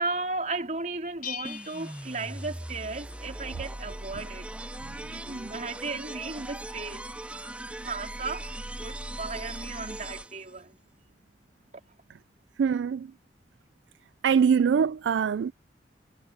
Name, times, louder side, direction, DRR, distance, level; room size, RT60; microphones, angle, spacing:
voice 1, 0.0-4.5 5.1-7.5 7.8-10.8 11.7-11.8, right 3 dB, 45° right, 3.9 m, -35 dB
Bell, 1.2-3.1, left 7 dB, 45° left, 1.0 m, -41 dB
sound 1, 1.4-10.6, right 1 dB, 5° right, 0.5 m, -39 dB
voice 2, 12.6-13.1 14.2-15.5, right 7 dB, 75° right, 0.3 m, -23 dB
head